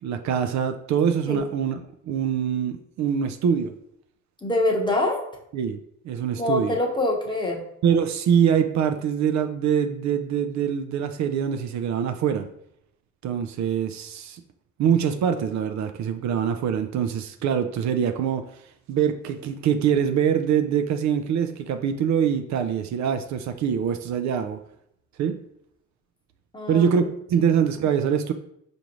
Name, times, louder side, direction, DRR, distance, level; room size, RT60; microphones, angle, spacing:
voice 1, 0.0-3.7 5.5-5.8 6.0-6.8 7.8-12.5 13.2-14.4 14.8-18.4 18.9-24.6 25.2-25.4 26.7-28.3, right 8 dB, 65° right, 8 dB, 0.4 m, -24 dB
voice 2, 4.4-5.2 6.4-7.6 26.5-26.9, left 1 dB, 15° left, 0 dB, 0.9 m, -24 dB
4.8 x 2.6 x 3.0 m, 0.73 s
cardioid pair, 90°, 30 cm